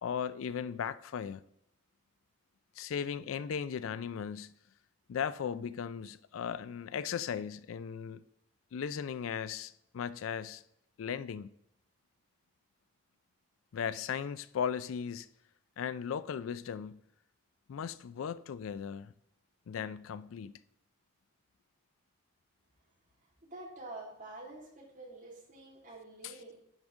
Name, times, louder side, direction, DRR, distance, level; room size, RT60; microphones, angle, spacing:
voice 1, 0.0-1.4 2.8-4.6 5.1-8.2 8.7-10.6 11.0-11.5 13.7-15.3 15.8-17.0 17.7-19.1 19.7-20.6 26.2-26.4, left 7 dB, 80° left, 0.3 m, -37 dB
voice 2, 23.4-26.5, right 2 dB, 40° right, 2.3 m, -47 dB
10.5 x 5.0 x 3.6 m
head